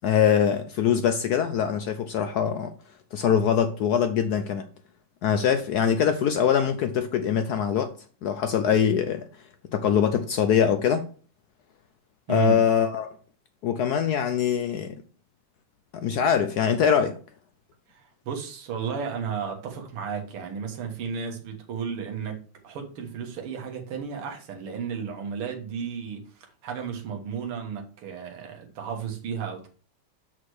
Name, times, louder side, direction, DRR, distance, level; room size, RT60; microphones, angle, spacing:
voice 1, 0.0-2.7 3.1-4.7 5.2-7.9 8.2-9.3 9.7-11.1 12.3-13.1 13.6-15.0 15.9-17.2, left 8 dB, 80° left, 0.8 m, -23 dB
voice 2, 12.3-12.6 17.9-29.7, right 7 dB, 80° right, 2.3 m, -33 dB
6.4 x 5.8 x 4.7 m
omnidirectional pair, 2.4 m